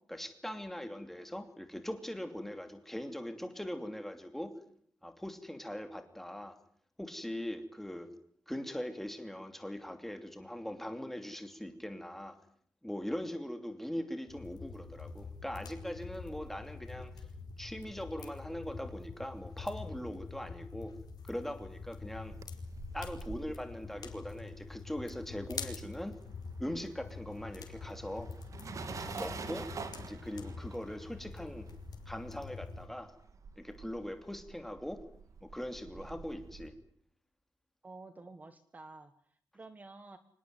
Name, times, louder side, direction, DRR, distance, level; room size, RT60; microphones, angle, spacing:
voice 1, 0.1-4.5 5.0-6.6 7.0-8.1 8.5-12.4 12.8-17.3 17.6-20.9 21.2-22.3 22.9-26.1 26.6-28.3 29.2-29.7 30.0-31.6 32.1-33.1 33.6-35.0 35.4-36.7, left 1 dB, 5° left, 7 dB, 2.8 m, -41 dB
sound 1, 14.3-32.9, left 4 dB, 65° left, 4.7 m, -46 dB
sound 2, 22.0-25.7 26.0-36.7, right 5 dB, 50° right, 2.5 m, -48 dB
voice 2, 37.8-40.2, right 3 dB, 20° right, 11 dB, 1.5 m, -51 dB
25.5 x 20.0 x 9.5 m, 0.63 s
wide cardioid pair, 175°, 7 cm